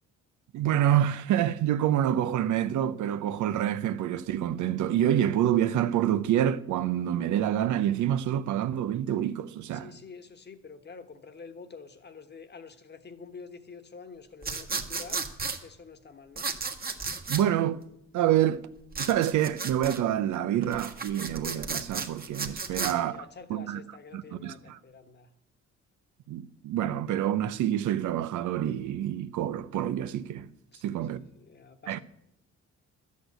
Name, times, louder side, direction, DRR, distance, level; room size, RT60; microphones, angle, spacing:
voice 1, 0.5-9.9 17.3-17.8 18.1-18.7 19.0-23.1 23.5-23.8 24.1-24.8 26.3-30.5 30.8-31.2 31.9-32.0, right 11 dB, 75° right, 0.7 m, -27 dB
voice 2, 9.7-15.3 15.6-16.5 22.7-25.3 30.7-32.0, left 5 dB, 35° left, 1.3 m, -47 dB
sound 1, 14.4-15.6 16.4-17.4 18.9-20.0 20.6-22.9, right 4 dB, 30° right, 1.5 m, -33 dB
11.5 x 8.5 x 8.0 m
cardioid pair, 90°, 30 cm